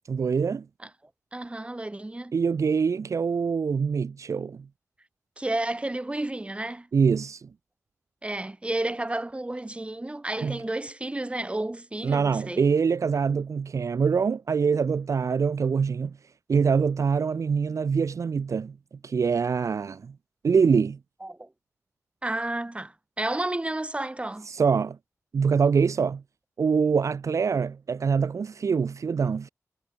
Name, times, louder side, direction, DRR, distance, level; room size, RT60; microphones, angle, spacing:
voice 1, 0.1-0.6 2.3-4.6 6.9-7.5 10.4-10.6 12.0-16.1 16.5-18.7 19.0-20.1 20.4-21.0 24.5-25.0 25.3-26.2 26.6-29.5, right 6 dB, 65° right, 0.5 m, -24 dB
voice 2, 1.3-2.3 5.4-6.9 8.2-12.7 21.2-21.5 22.2-24.5, right 2 dB, 20° right, 3.2 m, -31 dB
wide cardioid pair, 90°, 6 cm